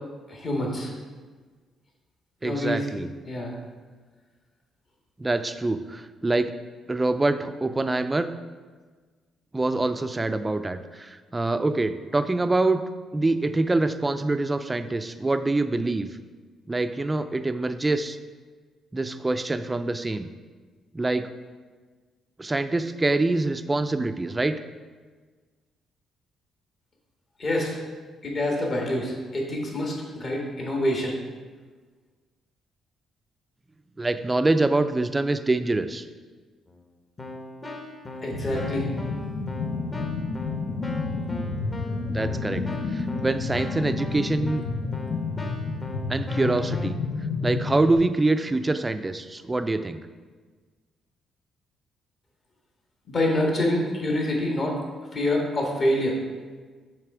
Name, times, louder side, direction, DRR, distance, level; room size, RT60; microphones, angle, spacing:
voice 1, 0.3-0.9 2.4-2.9 3.3-3.5 27.4-27.8 28.2-31.1 38.2-38.9 53.1-54.8 55.1-56.2, left 1 dB, 45° left, -1 dB, 1.6 m, -26 dB
voice 2, 2.4-3.1 5.2-6.5 6.9-8.3 9.5-12.8 13.1-16.1 16.7-18.2 18.9-20.3 20.9-21.3 22.4-24.6 34.0-36.0 42.1-42.6 42.9-44.6 46.1-47.0 47.4-50.0, right 2 dB, 20° right, 10 dB, 0.3 m, -25 dB
Keyboard (musical), 36.7-36.8 37.2-46.9, left 1 dB, 25° left, 0.9 m, -39 dB
sound 1, 38.3-48.0, left 4 dB, 65° left, 0.7 m, -30 dB
6.7 x 3.3 x 4.9 m, 1.4 s
cardioid pair, 90°, 0 cm